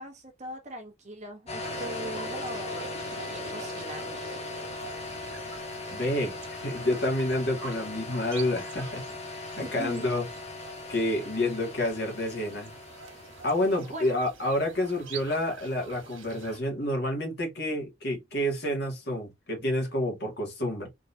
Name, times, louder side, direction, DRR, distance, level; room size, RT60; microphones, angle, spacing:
voice 1, 0.0-4.2 9.5-10.1 13.8-14.1, right 1 dB, 35° right, 1.1 m, -40 dB
sound 1, 1.5-14.1, left 3 dB, 35° left, 0.8 m, -39 dB
sound 2, 1.6-16.6, right 4 dB, 85° right, 1.4 m, -44 dB
voice 2, 5.9-9.0 9.3-10.2 10.9-12.7 13.4-20.9, left 1 dB, 55° left, 2.1 m, -29 dB
3.9 x 3.7 x 2.7 m
head